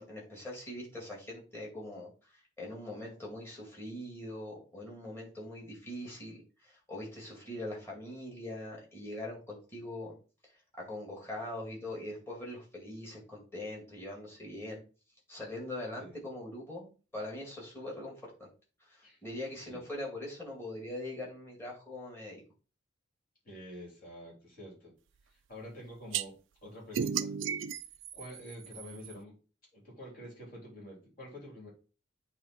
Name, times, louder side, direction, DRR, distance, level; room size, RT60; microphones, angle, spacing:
voice 1, 0.0-10.2 10.4-10.5 10.8-14.8 15.3-18.5 18.8-22.4, left 1 dB, 10° left, -3 dB, 2.2 m, -42 dB
voice 2, 23.4-24.9 25.3-26.3 26.6-27.3 28.1-29.3 29.7-31.7, equal, 45° left, -3 dB, 3.3 m, -47 dB
sound 1, 26.1-26.2 26.9-29.1, right 7 dB, 65° right, 0.4 m, -34 dB
8.6 x 3.0 x 4.3 m, 0.35 s
head